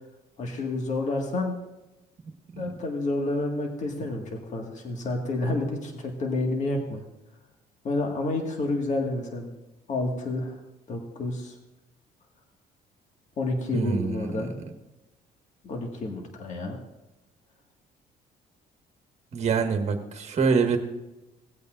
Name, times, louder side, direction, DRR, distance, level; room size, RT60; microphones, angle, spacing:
voice 1, 0.4-1.5 2.6-7.0 7.8-9.5 9.9-10.6 10.9-11.5 13.4-14.5 15.6-16.8, left 2 dB, 45° left, 1 dB, 1.8 m, -29 dB
voice 2, 13.7-14.4 19.3-20.8, right 5 dB, 40° right, 5 dB, 1.6 m, -25 dB
18.0 x 8.5 x 2.5 m, 1.0 s
cardioid pair, 110°, 17 cm